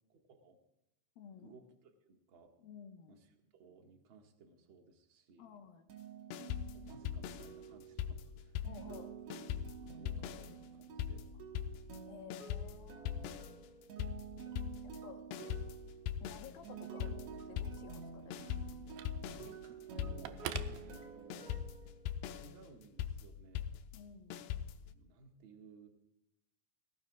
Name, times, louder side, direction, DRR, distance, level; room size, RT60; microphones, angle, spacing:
voice 1, 0.1-0.6 1.3-2.5 3.1-5.5 6.7-8.6 8.9-9.1 9.8-11.3 19.2-21.6 22.3-23.7 24.9-25.9, right 3 dB, 45° right, 3 dB, 1.7 m, -59 dB
voice 2, 1.2-1.6 2.6-3.2 5.4-5.8 8.6-9.1 12.1-13.4 14.8-15.2 16.2-18.4 20.6-20.7 23.9-24.5, left 7 dB, 70° left, 5 dB, 2.8 m, -54 dB
sound 1, 5.9-22.6, right 7 dB, 65° right, 1.5 m, -50 dB
sound 2, 6.3-9.0 9.3-24.9, left 10 dB, 90° left, 2.9 m, -42 dB
Telephone, 16.9-21.6, right 11 dB, 90° right, 2.8 m, -49 dB
19.0 x 16.5 x 2.4 m, 0.85 s
omnidirectional pair, 4.8 m